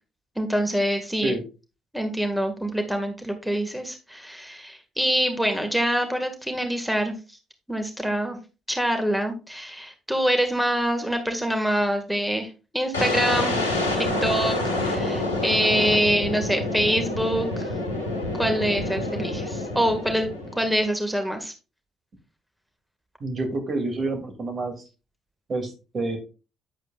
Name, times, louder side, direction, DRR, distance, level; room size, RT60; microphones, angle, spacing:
voice 1, 0.4-1.3 1.9-7.2 7.7-8.4 8.7-13.6 14.0-17.7 18.4-20.3 20.5-21.5, equal, ahead, 5 dB, 1.9 m, -25 dB
sound 1, 12.9-20.8, left 2 dB, 90° left, 1.6 m, -27 dB
voice 2, 23.2-24.8 25.5-26.2, right 2 dB, 45° right, 5 dB, 2.6 m, -28 dB
10.0 x 7.9 x 2.4 m, 0.31 s
hypercardioid pair, 45°, 0 cm